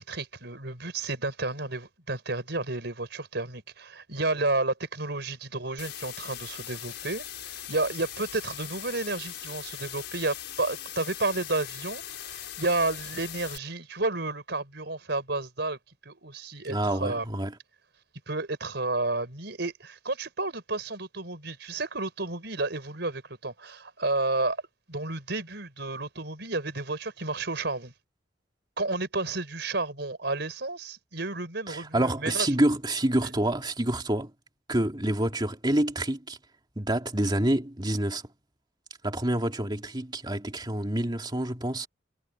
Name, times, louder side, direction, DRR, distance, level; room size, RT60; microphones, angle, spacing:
voice 1, 0.0-17.2 18.3-24.6 24.9-27.9 28.8-32.5, right 2 dB, 65° right, 5.9 m, -31 dB
sound 1, 5.8-13.6, left 11 dB, 70° left, 6.6 m, -40 dB
voice 2, 16.7-17.5 31.7-34.3 34.7-36.4 36.8-38.2 39.0-41.9, right 1 dB, 25° right, 2.6 m, -27 dB
head